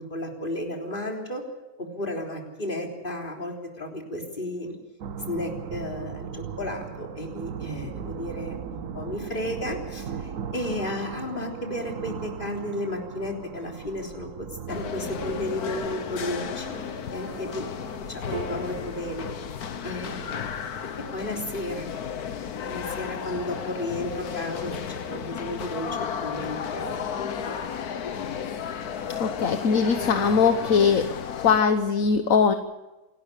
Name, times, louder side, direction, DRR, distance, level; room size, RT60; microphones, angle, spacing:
voice 1, 0.0-1.4 1.8-4.8 5.2-16.8 17.1-17.7 18.1-19.2 19.8-20.5 21.1-21.9 22.6-27.7, left 1 dB, 35° left, 1 dB, 3.8 m, -33 dB
sound 1, 5.0-20.3, right 7 dB, 65° right, 1.3 m, -39 dB
sound 2, 14.7-31.6, left 7 dB, 85° left, 1.7 m, -33 dB
Piano, 18.3-24.9, right 3 dB, 25° right, 2.9 m, -44 dB
voice 2, 29.2-31.1 31.4-32.5, left 6 dB, 65° left, 8 dB, 1.5 m, -21 dB
27.0 x 12.5 x 8.3 m, 1.1 s
omnidirectional pair, 1.6 m